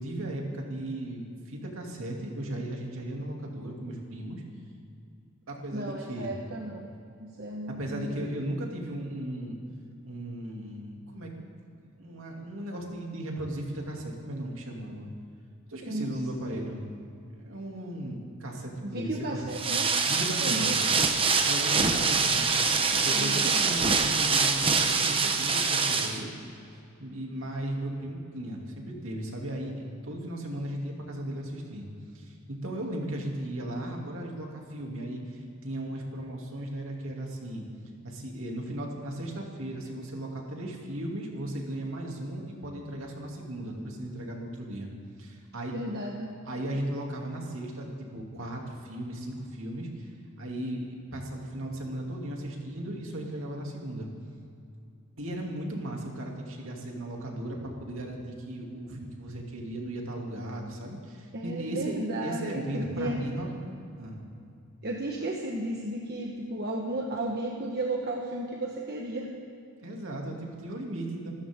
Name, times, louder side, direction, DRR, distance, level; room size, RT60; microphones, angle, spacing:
voice 1, 0.0-4.4 5.5-6.3 7.7-9.6 10.0-11.3 12.0-15.1 15.7-16.9 17.3-19.5 20.1-20.8 21.4-22.4 23.0-26.3 26.7-31.9 32.1-37.6 38.0-44.9 45.2-45.9 46.4-50.1 50.4-54.1 55.2-63.5 64.0-64.2 69.8-71.3, right 1 dB, 60° right, 0 dB, 2.7 m, -36 dB
voice 2, 5.7-6.9 7.2-8.4 15.8-16.1 16.4-16.7 18.8-19.9 20.4-20.8 23.1-23.3 45.7-46.4 61.3-63.2 64.8-69.3, right 1 dB, 45° right, -1 dB, 1.3 m, -34 dB
sound 1, 19.5-26.2, right 4 dB, 25° right, 1.0 m, -25 dB
26.5 x 13.5 x 3.7 m, 2.5 s
head